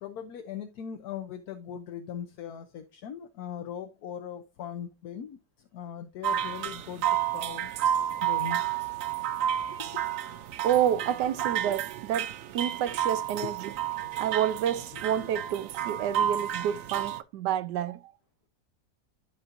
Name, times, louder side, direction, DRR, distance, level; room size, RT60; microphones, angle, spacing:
voice 1, 0.0-7.1 7.3-7.7 8.2-8.6 9.8-9.9 13.3-13.5 15.2-15.3, left 8 dB, 70° left, 1.2 m, -39 dB
sound 1, 6.2-17.2, right 10 dB, 65° right, 0.8 m, -31 dB
voice 2, 10.6-13.7 14.2-18.1, right 10 dB, 80° right, 1.3 m, -29 dB
12.5 x 4.4 x 2.6 m
omnidirectional pair, 1.8 m